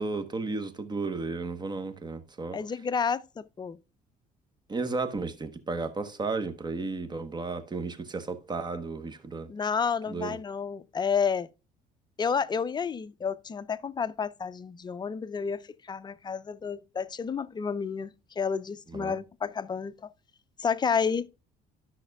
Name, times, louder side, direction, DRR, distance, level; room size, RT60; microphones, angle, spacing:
voice 1, 0.0-2.6 4.7-9.5 10.1-10.4 18.9-19.2, right 3 dB, 25° right, 1.0 m, -33 dB
voice 2, 2.5-3.8 9.5-11.5 12.2-15.6 15.9-20.0 20.6-21.3, left 6 dB, 25° left, 0.5 m, -30 dB
13.5 x 5.8 x 2.3 m
cardioid pair, 110°, 17 cm